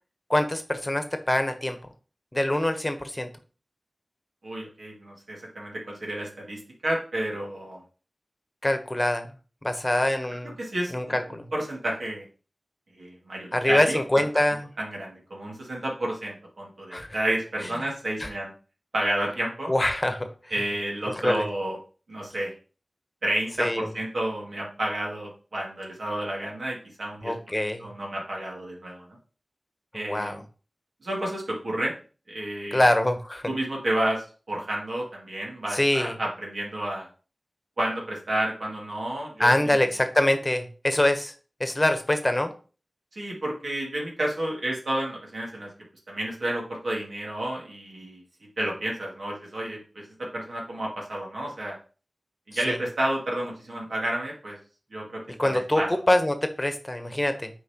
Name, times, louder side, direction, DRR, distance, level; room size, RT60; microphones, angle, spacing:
voice 1, 0.3-1.8 2.3-3.3 8.6-9.3 9.6-10.6 10.9-11.5 13.5-14.7 16.9-17.1 18.2-18.3 19.7-20.3 21.1-21.5 23.6-23.9 27.2-27.9 29.9-30.4 32.7-33.4 35.7-36.1 39.4-41.3 41.6-42.5 52.7-52.8 55.4-57.5, left 1 dB, 25° left, 8 dB, 1.0 m, -24 dB
voice 2, 4.4-7.8 10.6-12.2 13.0-14.2 14.8-18.5 18.9-19.7 20.5-21.8 22.1-22.5 23.2-27.3 27.6-29.0 29.9-30.4 31.0-31.9 32.3-32.9 33.5-37.1 37.8-39.8 43.1-45.7 46.1-48.2 48.6-51.8 52.5-54.6 54.9-55.9, right 1 dB, 90° right, -3 dB, 2.3 m, -31 dB
8.1 x 4.7 x 3.0 m, 0.37 s
wide cardioid pair, 45°, 0 cm